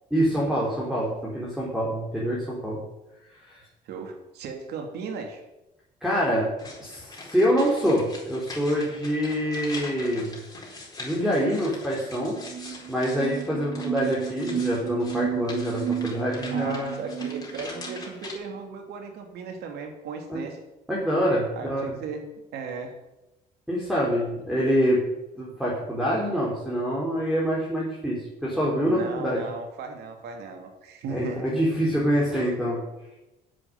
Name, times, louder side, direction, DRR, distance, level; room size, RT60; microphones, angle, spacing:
voice 1, 0.1-2.8 3.5-3.6 6.0-6.5 6.8-10.4 11.0-12.4 12.9-17.0 20.3-20.4 20.9-21.9 23.7-25.1 25.4-29.4 31.1-32.8, equal, ahead, -5 dB, 3.8 m, -25 dB
voice 2, 3.8-5.4 16.5-20.6 21.6-23.0 28.8-31.5, right 5 dB, 75° right, 4 dB, 2.8 m, -36 dB
sound 1, 6.6-18.3, left 2 dB, 20° left, 4.5 m, -42 dB
sound 2, 12.4-18.1, right 9 dB, 45° right, 3.8 m, -32 dB
10.5 x 8.0 x 9.9 m, 0.98 s
cardioid pair, 110°, 17 cm